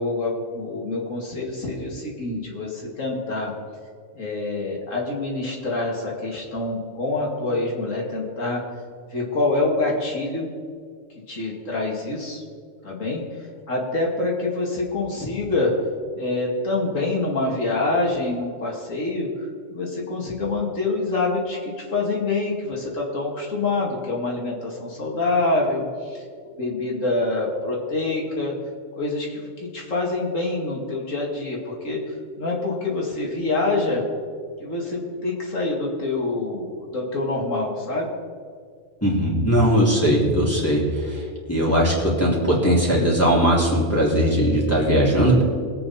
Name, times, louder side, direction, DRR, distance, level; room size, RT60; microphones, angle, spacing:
voice 1, 0.0-3.5 4.1-8.6 9.1-10.5 11.3-12.4 12.8-13.2 13.7-15.7 16.2-26.2 26.6-28.5 29.0-34.0 34.6-38.1, left 2 dB, 80° left, -2 dB, 2.6 m, -26 dB
voice 2, 39.0-41.2 41.5-45.4, equal, 10° left, -5 dB, 2.8 m, -19 dB
21.5 x 8.6 x 4.2 m, 2.1 s
omnidirectional pair, 1.3 m